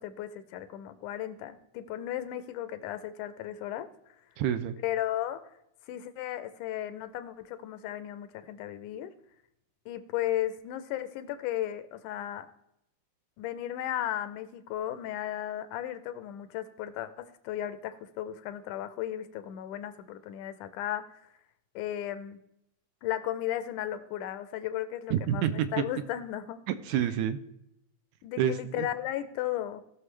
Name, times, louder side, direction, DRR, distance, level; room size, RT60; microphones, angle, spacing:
voice 1, 0.0-3.9 4.8-5.4 5.9-9.1 9.9-12.5 13.4-21.3 21.8-22.4 23.0-26.6 27.0-27.1 28.2-29.8, left 12 dB, 90° left, 12 dB, 2.2 m, -35 dB
voice 2, 4.4-4.8 25.1-25.7 26.7-27.4 28.4-28.9, right 10 dB, 80° right, 11 dB, 1.8 m, -28 dB
18.0 x 6.2 x 3.3 m, 0.81 s
omnidirectional pair, 3.5 m